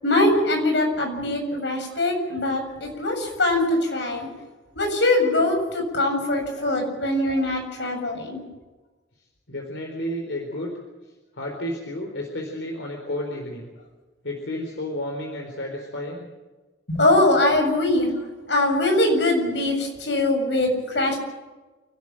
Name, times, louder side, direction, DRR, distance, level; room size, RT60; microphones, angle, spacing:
voice 1, 0.0-4.3 4.7-8.4 16.9-18.1 18.5-21.2, left 1 dB, 70° left, 3 dB, 7.4 m, -22 dB
voice 2, 9.5-10.7 11.3-13.7 14.2-16.3, left 1 dB, 90° left, 1 dB, 4.3 m, -31 dB
29.5 x 12.5 x 8.9 m, 1.2 s
head